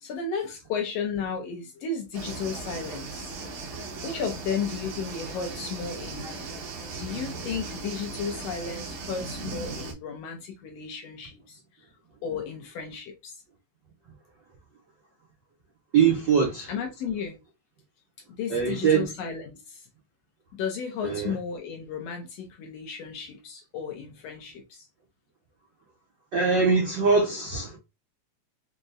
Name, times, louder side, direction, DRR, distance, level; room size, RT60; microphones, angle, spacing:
voice 1, 0.0-3.6 4.0-6.3 7.0-11.6 12.2-13.4 16.7-17.4 18.3-19.8 20.5-24.9, left 6 dB, 75° left, 1.6 m, -34 dB
sound 1, 2.1-9.9, right 3 dB, 90° right, 2.6 m, -37 dB
voice 2, 15.9-16.7 18.5-19.1 21.0-21.4 26.3-27.8, right 5 dB, 70° right, 1.0 m, -22 dB
6.0 x 2.2 x 2.5 m
omnidirectional pair, 3.4 m